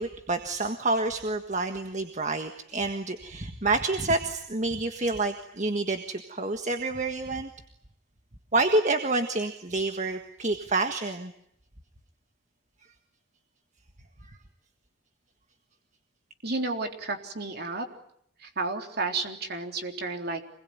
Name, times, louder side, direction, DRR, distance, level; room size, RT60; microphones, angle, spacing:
voice 1, 0.0-7.5 8.5-11.3 14.3-14.4, right 2 dB, 35° right, 7 dB, 1.6 m, -28 dB
voice 2, 16.4-17.9 18.4-20.5, right 3 dB, 55° right, 5 dB, 3.7 m, -32 dB
27.0 x 21.0 x 9.7 m, 0.71 s
head